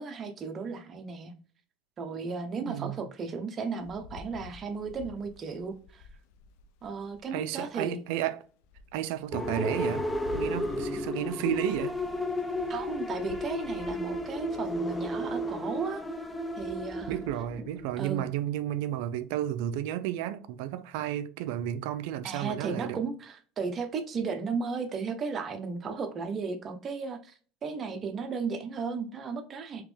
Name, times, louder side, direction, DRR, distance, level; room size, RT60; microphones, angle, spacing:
voice 1, 0.0-1.3 2.0-6.0 6.8-8.0 12.7-16.0 16.6-17.2 18.0-18.2 22.2-27.3 27.6-29.8, right 5 dB, 35° right, 0.7 m, -35 dB
voice 2, 2.6-3.0 7.3-8.4 8.9-10.1 10.3-12.0 17.1-23.0, right 12 dB, 75° right, 0.4 m, -32 dB
Rain, 3.8-7.3 7.9-8.0 8.4-15.0, left 4 dB, 75° left, 0.4 m, -50 dB
sound 1, 9.3-18.0, left 1 dB, 10° left, 0.5 m, -33 dB
3.5 x 3.0 x 3.3 m
supercardioid pair, 115°, 0 cm